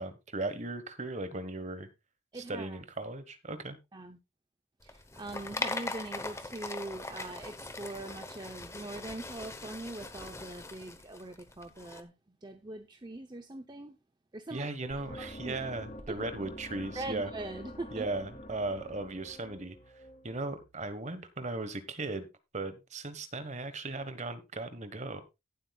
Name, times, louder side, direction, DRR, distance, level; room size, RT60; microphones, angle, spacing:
voice 1, 0.0-1.9 2.3-3.8 14.5-17.3 17.9-19.8 20.2-22.3 22.5-25.4, right 2 dB, 35° right, 1.3 m, -37 dB
voice 2, 2.3-2.8 3.9-4.2 4.8-14.0 14.3-15.6 16.1-16.2 16.9-18.1, right 2 dB, 20° right, 0.7 m, -42 dB
sound 1, 4.8-12.0, left 2 dB, 15° left, 0.9 m, -40 dB
sound 2, 14.9-21.0, equal, 40° left, 2.1 m, -47 dB
18.0 x 7.9 x 2.3 m
head